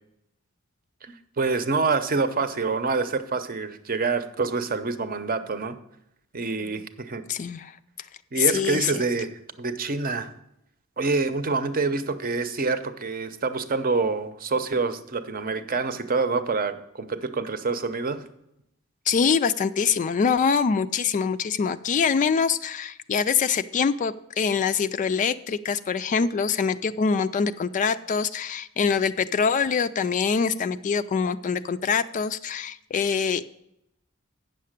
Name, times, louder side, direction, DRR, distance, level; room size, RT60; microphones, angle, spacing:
voice 1, 1.0-5.8 6.3-7.2 8.3-9.3 9.6-10.3 11.0-18.2, right 4 dB, 45° right, 11 dB, 0.7 m, -26 dB
voice 2, 7.3-7.8 8.3-9.0 19.1-33.6, left 6 dB, 35° left, 12 dB, 0.3 m, -24 dB
8.9 x 6.6 x 6.5 m, 0.81 s
head